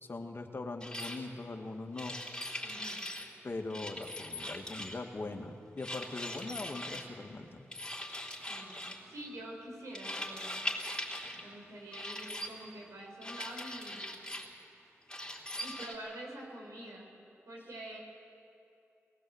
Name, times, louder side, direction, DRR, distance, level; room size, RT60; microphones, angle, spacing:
voice 1, 0.0-2.1 3.4-7.6, left 3 dB, 45° left, 4 dB, 1.9 m, -41 dB
sound 1, 0.8-1.2 2.0-3.3 3.7-5.1 5.8-7.1 7.7-9.0 9.9-11.4 11.9-12.5 13.2-14.5 15.1-15.9, left 1 dB, 15° left, 3.6 m, -40 dB
voice 2, 2.6-3.0 8.5-10.7 11.4-14.2 15.6-17.1 17.5-18.0, right 1 dB, 75° right, -1 dB, 5.3 m, -46 dB
20.0 x 19.0 x 7.9 m, 2.6 s
cardioid pair, 50°, 5 cm